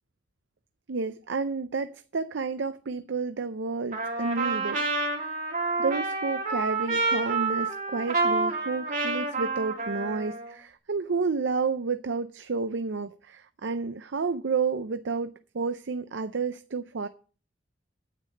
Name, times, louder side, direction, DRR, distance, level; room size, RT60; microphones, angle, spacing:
voice 1, 0.9-4.8 5.1-5.3 5.8-17.1, right 4 dB, 75° right, 0.6 m, -30 dB
Trumpet, 3.9-10.5, right 3 dB, 45° right, 2.8 m, -28 dB
9.7 x 8.3 x 6.5 m
head